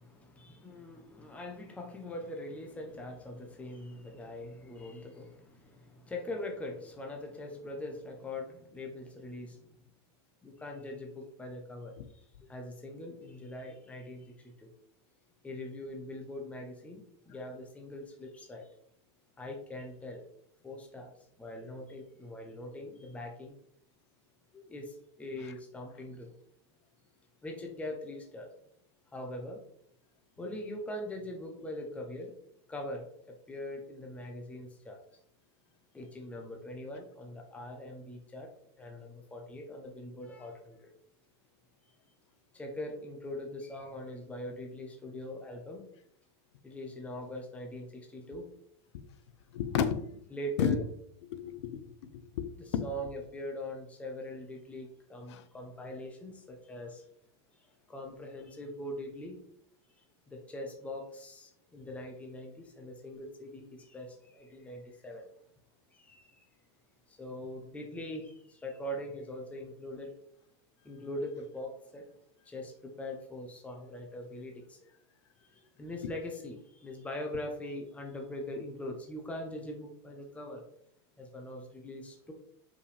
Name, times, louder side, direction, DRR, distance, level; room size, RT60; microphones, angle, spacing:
voice 1, 0.0-9.8 10.4-14.7 15.4-18.7 19.4-20.3 20.6-23.6 24.5-26.3 27.4-28.5 29.1-29.6 30.4-32.3 32.7-35.0 35.9-38.5 38.8-40.9 42.5-45.8 46.6-48.5 50.3-50.8 52.6-57.0 57.5-59.4 60.3-65.3 65.9-66.4 67.1-70.1 70.8-72.1 72.4-74.8 75.5-80.6 81.2-82.3, left 1 dB, 10° left, 1 dB, 0.9 m, -42 dB
voice 2, 49.5-50.2 50.6-50.8 51.2-51.8 52.1-52.9 55.3-55.4, left 7 dB, 90° left, 11 dB, 0.7 m, -32 dB
5.6 x 5.0 x 3.4 m, 0.69 s
supercardioid pair, 140°, 14 cm